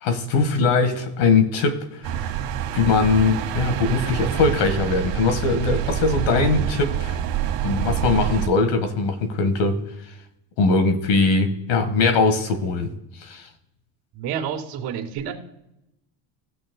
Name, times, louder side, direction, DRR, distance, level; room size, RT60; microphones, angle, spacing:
voice 1, 0.0-2.3 2.7-7.2 7.6-9.8 10.6-12.9 13.2-13.5, left 4 dB, 60° left, 1.6 m, -21 dB
sound 1, 2.0-8.5, right 10 dB, 75° right, 1.7 m, -26 dB
voice 2, 14.1-15.3, right 8 dB, 60° right, 2.5 m, -29 dB
19.5 x 6.5 x 2.2 m
cardioid pair, 135°, 48 cm